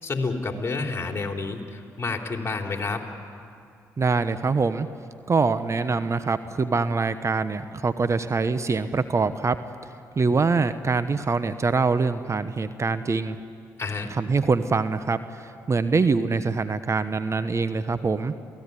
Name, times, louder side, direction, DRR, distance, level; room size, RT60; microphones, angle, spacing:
voice 1, 0.0-3.0 13.8-14.1, left 3 dB, 30° left, 3 dB, 3.6 m, -29 dB
voice 2, 4.0-4.9 5.3-9.6 10.2-13.4 14.2-18.3, right 4 dB, 35° right, 12 dB, 1.0 m, -24 dB
28.0 x 17.5 x 9.9 m, 2.4 s
hypercardioid pair, 45°, 8 cm